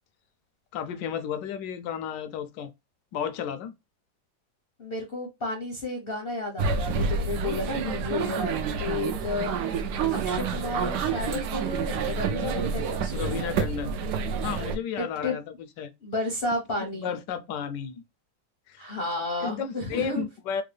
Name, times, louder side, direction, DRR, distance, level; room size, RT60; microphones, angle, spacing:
voice 1, 0.7-2.7 3.1-3.7 13.1-13.9 14.4-15.9 16.9-17.9 18.7-19.0 19.4-20.6, left 8 dB, 75° left, 1.1 m, -33 dB
voice 2, 4.8-9.6 10.1-13.4 15.0-15.4 16.0-17.1 18.8-20.2, left 2 dB, 45° left, 0.7 m, -32 dB
sound 1, 6.6-14.8, right 5 dB, 75° right, 1.0 m, -28 dB
3.6 x 2.2 x 3.3 m
omnidirectional pair, 2.1 m